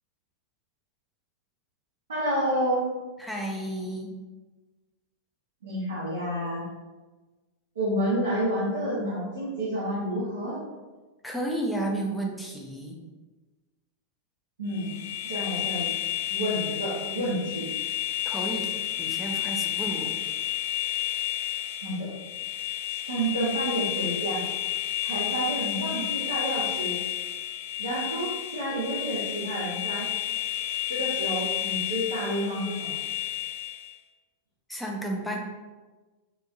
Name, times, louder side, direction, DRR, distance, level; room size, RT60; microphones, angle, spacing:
voice 1, 2.1-2.9 5.6-6.6 7.7-10.6 14.6-15.9 16.3-17.7 21.8-22.1 22.9-24.4 25.0-27.0 27.8-30.1 30.9-33.0, right 1 dB, 65° right, -7 dB, 0.9 m, -29 dB
voice 2, 3.2-4.1 11.2-13.0 18.3-18.7 19.0-20.1 34.7-35.4, right 1 dB, ahead, -1 dB, 0.6 m, -32 dB
sound 1, 14.7-33.9, left 13 dB, 55° left, 0.4 m, -31 dB
3.9 x 2.6 x 2.5 m, 1.2 s
figure-of-eight pair, 90°, 0 cm